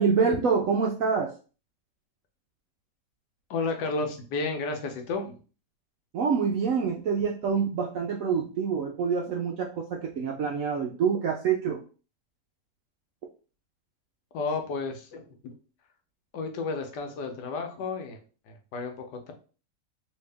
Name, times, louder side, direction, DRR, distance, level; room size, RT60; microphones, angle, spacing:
voice 1, 0.0-1.3 6.1-11.8, right 6 dB, 75° right, 0 dB, 0.8 m, -26 dB
voice 2, 3.5-5.4 14.3-15.5 16.3-18.2 18.5-18.9, left 4 dB, 75° left, 4 dB, 1.3 m, -32 dB
3.2 x 2.7 x 3.3 m, 0.36 s
omnidirectional pair, 1.9 m